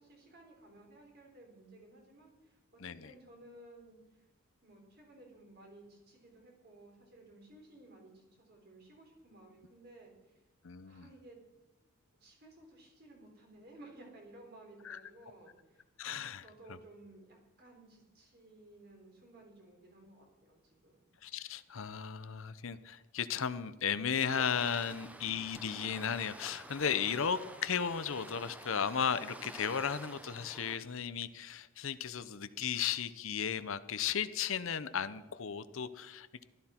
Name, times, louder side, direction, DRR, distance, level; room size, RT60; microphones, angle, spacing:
voice 1, 0.0-4.0 4.6-10.4 10.8-11.4 12.2-15.8 16.4-21.0 24.9-25.3, right 2 dB, 45° right, 0 dB, 3.7 m, -57 dB
voice 2, 2.8-3.1 10.6-11.1 14.8-15.0 16.0-16.4 21.2-36.4, left 7 dB, 65° left, 13 dB, 0.6 m, -35 dB
Waves surf, 24.3-30.8, right 1 dB, 5° right, 0.6 m, -49 dB
15.5 x 13.0 x 4.4 m, 1.1 s
head